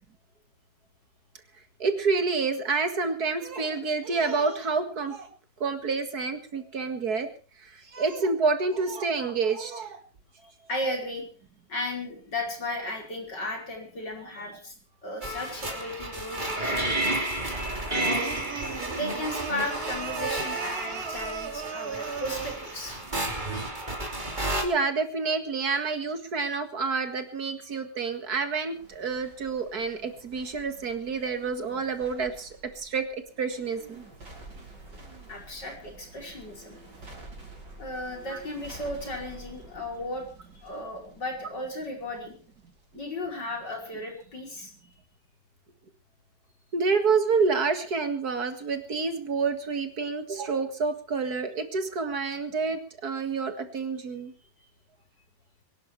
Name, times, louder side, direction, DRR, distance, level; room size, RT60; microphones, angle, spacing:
voice 1, 1.8-5.3 5.6-7.3 7.6-10.0 24.6-34.0 38.3-38.4 46.7-54.3, right 4 dB, 60° right, 8 dB, 2.4 m, -28 dB
voice 2, 10.4-11.2 11.7-14.7 15.0-16.9 17.9-18.3 18.9-23.0 35.3-36.8 37.8-40.2 40.6-42.4 42.9-44.7, left 1 dB, 80° left, 1 dB, 5.7 m, -35 dB
sound 1, 15.2-24.6, right 1 dB, 25° right, 3.1 m, -31 dB
sound 2, 17.9-22.8, right 7 dB, 45° right, 0.9 m, -37 dB
sound 3, 28.7-44.2 44.6-44.7, right 2 dB, 75° right, 4.9 m, -49 dB
23.5 x 11.5 x 4.6 m, 0.37 s
omnidirectional pair, 1.9 m